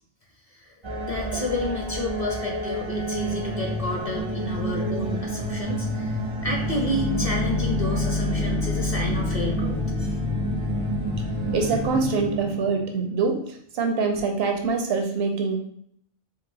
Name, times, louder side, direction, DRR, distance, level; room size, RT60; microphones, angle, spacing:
voice 1, 0.5-10.2, left 1 dB, 40° left, -1 dB, 0.6 m, -30 dB
sound 1, 0.8-13.0, right 1 dB, 40° right, 0.4 m, -29 dB
sound 2, 6.4-11.7, left 4 dB, 85° left, 0.9 m, -29 dB
voice 2, 11.5-15.6, right 4 dB, 75° right, 3 dB, 0.8 m, -25 dB
3.9 x 2.3 x 2.6 m, 0.68 s
omnidirectional pair, 1.1 m